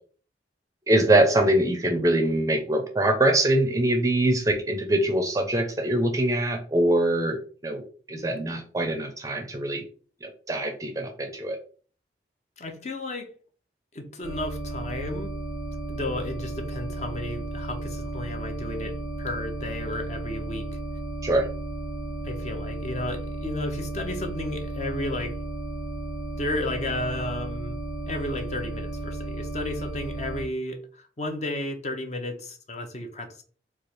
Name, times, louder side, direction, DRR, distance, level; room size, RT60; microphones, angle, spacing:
voice 1, 0.9-7.4 7.6-7.8 8.1-9.8 10.2-11.6 21.2-21.5, right 1 dB, 20° right, 0.5 m, -23 dB
voice 2, 12.6-13.3 13.9-15.3 15.9-20.7 22.2-25.4 26.4-27.8 28.1-33.4, left 1 dB, 40° left, 0.6 m, -33 dB
sound 1, 14.2-30.4, right 1 dB, 80° left, 1.3 m, -34 dB
3.2 x 2.4 x 4.2 m
head